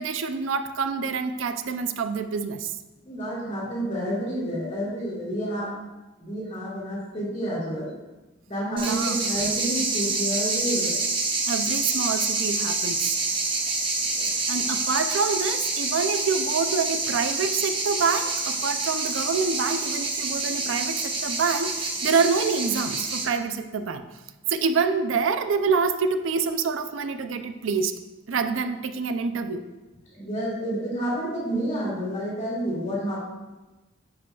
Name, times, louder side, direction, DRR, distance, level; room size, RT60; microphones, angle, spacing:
voice 1, 0.0-2.7 8.7-9.2 11.5-13.2 14.3-24.1 24.5-27.9 28.3-29.7, right 5 dB, 85° right, 9 dB, 0.4 m, -26 dB
voice 2, 3.1-5.8 6.2-7.9 8.5-11.0 14.1-14.3 30.1-33.2, equal, 35° left, -6 dB, 2.3 m, -29 dB
sound 1, 8.8-23.2, right 3 dB, 25° right, 0.9 m, -27 dB
11.0 x 5.1 x 2.3 m, 1.1 s
head